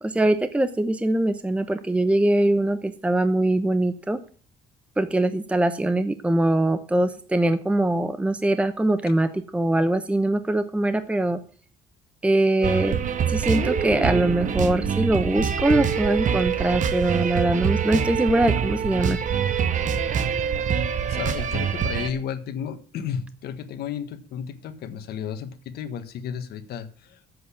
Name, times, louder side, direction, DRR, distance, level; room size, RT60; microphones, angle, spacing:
voice 1, 0.0-4.2 5.0-11.4 12.2-13.0 13.3-19.2, right 1 dB, 5° right, 10 dB, 0.8 m, -22 dB
sound 1, 12.6-22.1, right 7 dB, 50° right, 1.2 m, -25 dB
voice 2, 21.1-27.2, left 8 dB, 70° left, 9 dB, 1.4 m, -33 dB
7.9 x 7.9 x 8.4 m, 0.44 s
cardioid pair, 110°, 17 cm